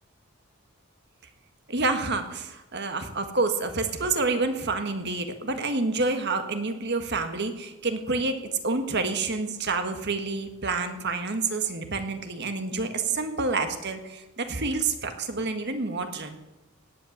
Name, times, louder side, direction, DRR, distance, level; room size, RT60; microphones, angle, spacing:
voice 1, 1.7-16.4, right 3 dB, 50° right, 7 dB, 1.6 m, -28 dB
18.0 x 8.6 x 8.7 m, 1.0 s
head